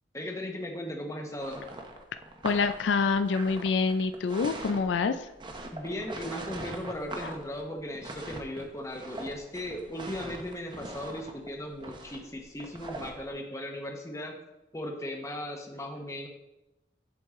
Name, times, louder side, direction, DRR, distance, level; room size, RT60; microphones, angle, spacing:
voice 1, 0.1-1.7 5.7-14.4 14.7-16.3, left 1 dB, 15° left, 2 dB, 0.9 m, -37 dB
sound 1, 1.4-13.3, right 2 dB, 25° right, 0.7 m, -42 dB
voice 2, 2.4-5.3 7.2-7.3, left 4 dB, 75° left, 10 dB, 0.4 m, -26 dB
10.0 x 4.6 x 3.7 m, 0.98 s
head